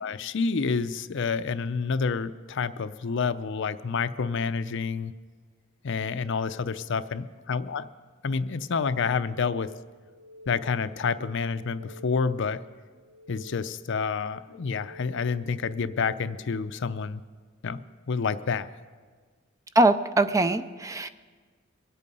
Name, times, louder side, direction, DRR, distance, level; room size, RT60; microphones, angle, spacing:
voice 1, 0.0-5.1 5.8-7.9 8.2-9.7 10.5-12.6 13.3-17.2 17.6-17.8 18.1-18.7, left 5 dB, 65° left, 12 dB, 0.5 m, -28 dB
sound 1, 9.9-11.0 11.4-12.5 12.9-14.0 14.5-15.6, left 1 dB, 40° right, 2.1 m, -51 dB
voice 2, 19.8-21.1, right 2 dB, 15° right, 11 dB, 0.4 m, -22 dB
23.0 x 8.4 x 5.3 m, 1.5 s
head